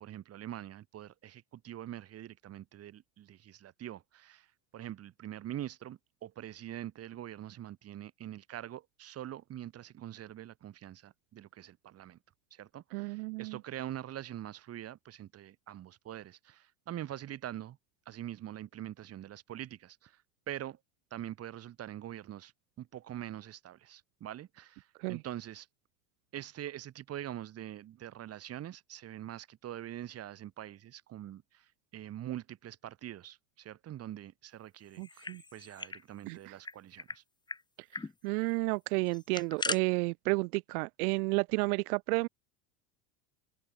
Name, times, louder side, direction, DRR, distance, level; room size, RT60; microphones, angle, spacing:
voice 1, 0.0-4.5 4.7-12.2 12.5-17.8 18.1-20.2 20.5-20.8 21.1-22.5 22.8-25.7 26.3-37.2, right 12 dB, 30° right, 2.2 m, -44 dB
voice 2, 12.9-13.6 25.0-25.2 35.0-35.4 36.3-36.5 38.2-42.3, right 28 dB, 65° right, 1.3 m, -31 dB
sound 1, 34.9-36.0 36.3-36.4 36.6-37.2 37.5-37.6 37.9-38.1 39.1-39.8, left 3 dB, 10° left, 1.7 m, -38 dB
open air
supercardioid pair, 140°, 48 cm